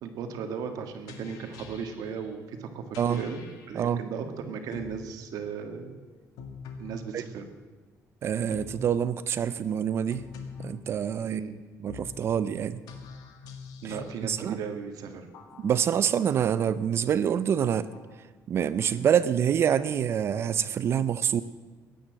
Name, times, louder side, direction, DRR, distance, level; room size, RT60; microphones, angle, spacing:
voice 1, 0.0-2.8 3.1-3.4 3.7-6.0 6.8-7.5 11.2-11.6 13.8-15.3 15.6-15.7, right 6 dB, 70° right, 6 dB, 1.7 m, -36 dB
sound 1, 1.1-2.2 2.9-3.7 4.7-5.1 6.4-7.1 8.5-8.9 10.1-10.9 11.9-12.3 12.9-14.2 15.3-16.0 16.8-16.9 17.9-18.1 18.8-18.9, left 5 dB, 80° left, 1.9 m, -44 dB
voice 2, 8.2-10.2 10.6-11.4 11.8-12.8 13.8-14.0 14.2-14.6 15.6-17.9 18.5-21.4, right 8 dB, 40° right, 15 dB, 0.5 m, -26 dB
15.5 x 10.5 x 7.6 m, 1.4 s
cardioid pair, 165°, 6 cm